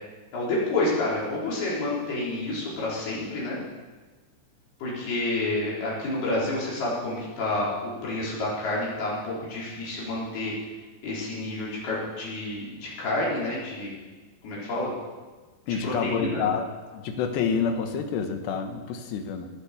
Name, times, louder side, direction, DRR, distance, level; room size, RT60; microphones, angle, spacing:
voice 1, 0.3-3.6 4.8-10.5 11.0-13.9 14.4-14.9 15.8-16.4, left 2 dB, 60° left, -6 dB, 6.2 m, -29 dB
voice 2, 15.7-16.6 16.9-19.5, left 6 dB, 75° left, 6 dB, 3.3 m, -28 dB
17.0 x 10.5 x 7.0 m, 1.3 s
omnidirectional pair, 5.3 m